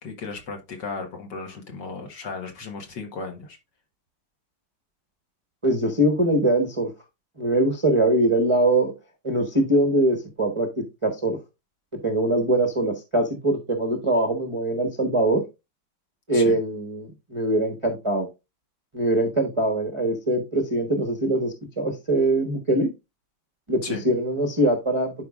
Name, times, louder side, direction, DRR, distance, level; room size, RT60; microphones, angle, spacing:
voice 1, 0.0-3.6 16.3-16.6 23.8-24.0, left 4 dB, 55° left, 3 dB, 2.0 m, -35 dB
voice 2, 5.6-6.9 7.4-8.9 9.2-10.7 11.0-11.4 12.0-15.4 16.3-18.3 18.9-22.9 23.7-25.1, right 1 dB, 20° right, 1 dB, 0.8 m, -22 dB
11.5 x 5.0 x 2.4 m, 0.24 s
omnidirectional pair, 2.4 m